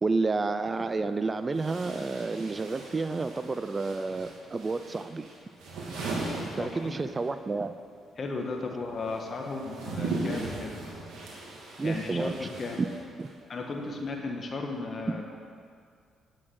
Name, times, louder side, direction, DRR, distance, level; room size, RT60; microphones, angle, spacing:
voice 1, 0.0-5.3 6.6-7.7 11.8-12.3 13.2-13.3, right 3 dB, 30° right, 11 dB, 0.4 m, -30 dB
sound 1, 0.6-0.7 1.5-7.3 7.6-13.4, right 3 dB, 80° right, 2.7 m, -38 dB
voice 2, 6.6-7.0 8.2-10.7 11.8-12.8 13.5-15.4, left 3 dB, 40° left, 1 dB, 1.4 m, -35 dB
9.9 x 7.5 x 7.8 m, 2.2 s
cardioid pair, 90°, 0 cm